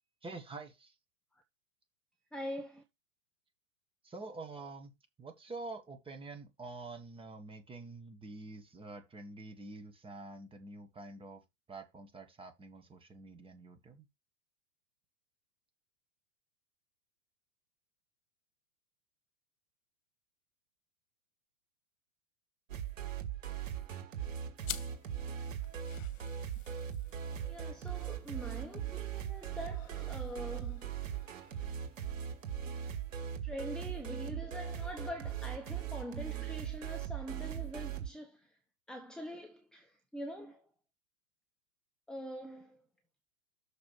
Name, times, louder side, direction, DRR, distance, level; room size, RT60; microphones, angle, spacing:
voice 1, 0.2-0.9 4.0-4.9 5.2-11.4 11.7-14.1, right 3 dB, 15° right, 1.8 m, -47 dB
voice 2, 2.3-2.8 27.5-31.0 33.4-38.5 38.9-40.6 42.1-42.8, equal, ahead, 1.1 m, -44 dB
sound 1, 22.7-38.1, right 9 dB, 70° right, 2.4 m, -39 dB
sound 2, 24.6-33.6, left 9 dB, 70° left, 1.2 m, -52 dB
6.7 x 5.2 x 5.6 m
hypercardioid pair, 105°, 40 cm